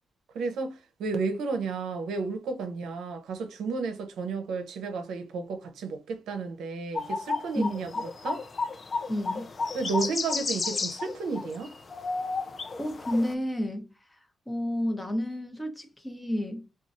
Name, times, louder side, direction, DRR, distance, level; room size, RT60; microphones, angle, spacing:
voice 1, 0.3-7.9 8.2-8.5 9.7-11.7, right 4 dB, 85° right, 0.6 m, -32 dB
sound 1, 6.9-13.3, left 4 dB, 45° left, 0.4 m, -32 dB
voice 2, 7.6-7.9 9.1-9.5 12.8-14.2 14.5-16.7, left 1 dB, 15° left, 0.8 m, -31 dB
3.0 x 2.3 x 2.4 m
cardioid pair, 70°, 0 cm